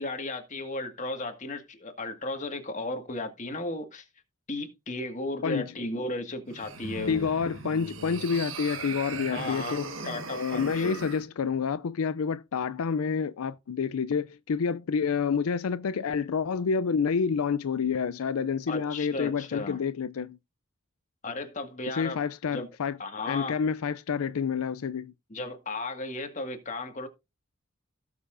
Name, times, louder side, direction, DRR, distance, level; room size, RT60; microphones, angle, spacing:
voice 1, 0.0-4.1 4.5-7.3 9.3-11.0 18.7-19.8 21.2-22.2 22.5-22.7 23.0-23.6 25.3-27.1, left 2 dB, 35° left, 1.8 m, -35 dB
sound 1, 6.5-11.2, right 4 dB, 65° right, 1.6 m, -39 dB
voice 2, 7.1-9.9 10.3-20.4 21.9-23.0 23.3-25.1, left 6 dB, 80° left, 0.4 m, -28 dB
17.0 x 6.8 x 2.6 m
head